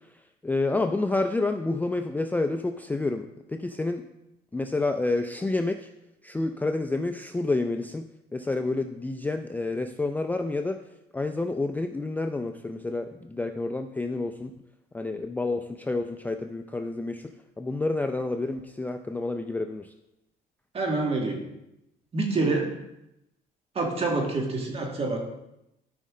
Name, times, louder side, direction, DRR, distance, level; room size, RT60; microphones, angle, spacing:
voice 1, 0.4-4.0 4.5-5.9 6.2-8.1 8.3-10.8 11.1-14.5 14.9-17.3 17.6-19.9, left 2 dB, 10° left, 6 dB, 0.4 m, -29 dB
voice 2, 20.7-21.4 22.1-22.7 23.7-25.3, right 3 dB, 35° right, 1 dB, 2.1 m, -27 dB
13.0 x 5.3 x 3.8 m, 0.88 s
cardioid pair, 110°, 17 cm